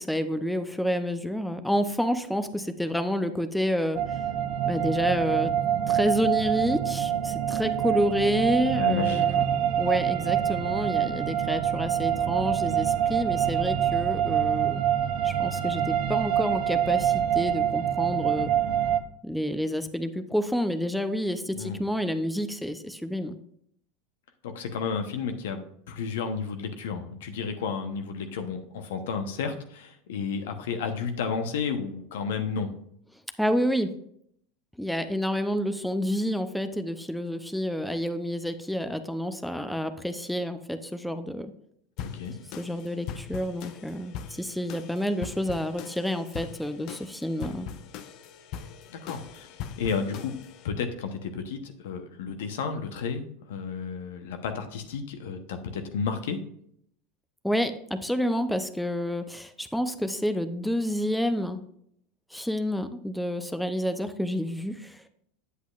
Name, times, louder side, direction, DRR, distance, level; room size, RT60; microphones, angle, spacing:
voice 1, 0.0-4.0 4.7-5.5 5.9-9.4 9.8-14.8 15.2-18.5 19.2-23.4 33.4-33.9 34.8-41.5 42.6-47.7 57.4-61.6 62.3-65.0, equal, ahead, 9 dB, 0.6 m, -29 dB
sound 1, 3.9-19.0, right 10 dB, 60° right, 0.6 m, -26 dB
voice 2, 8.7-9.5 21.5-21.8 24.4-32.7 42.0-42.4 48.9-50.3 50.6-56.4, left 5 dB, 75° left, 7 dB, 0.9 m, -32 dB
sound 2, 42.0-50.7, left 8 dB, 55° left, 0.6 m, -41 dB
8.3 x 8.0 x 2.5 m, 0.68 s
hypercardioid pair, 95°, 0 cm